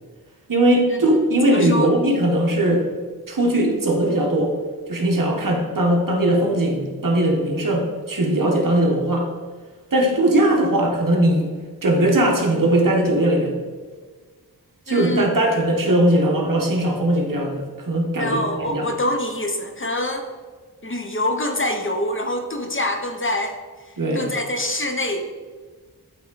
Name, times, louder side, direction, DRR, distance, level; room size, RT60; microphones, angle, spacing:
voice 1, 0.5-2.9 3.3-4.5 4.9-9.3 9.9-11.5 11.8-13.5 14.9-18.4 18.7-18.9 24.0-24.3, right 1 dB, 55° right, 0 dB, 1.2 m, -19 dB
voice 2, 1.4-1.9 14.9-15.3 18.2-20.3 20.8-23.6 24.1-25.3, left 1 dB, 35° left, 5 dB, 0.6 m, -25 dB
8.1 x 3.5 x 3.9 m, 1.5 s
wide cardioid pair, 65°, 38 cm